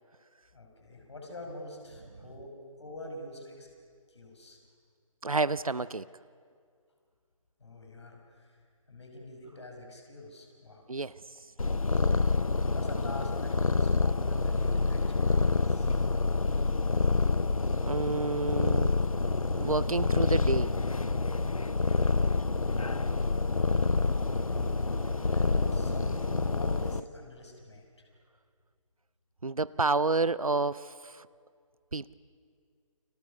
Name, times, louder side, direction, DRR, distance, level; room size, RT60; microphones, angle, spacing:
voice 1, 0.5-3.7 4.1-4.6 7.6-8.6 8.9-10.8 11.9-12.0 12.4-15.9 25.3-28.1, left 2 dB, 50° left, 2 dB, 6.0 m, -46 dB
voice 2, 5.2-6.1 10.9-11.5 17.9-18.9 19.6-20.8 29.4-31.3 31.9-32.1, right 3 dB, 80° right, 18 dB, 0.7 m, -30 dB
Purr, 11.6-27.0, left 3 dB, 75° left, 0.8 m, -27 dB
sound 1, 18.4-27.1, right 6 dB, 30° right, 0.9 m, -51 dB
29.5 x 24.5 x 7.0 m, 2.1 s
figure-of-eight pair, 150°, 18 cm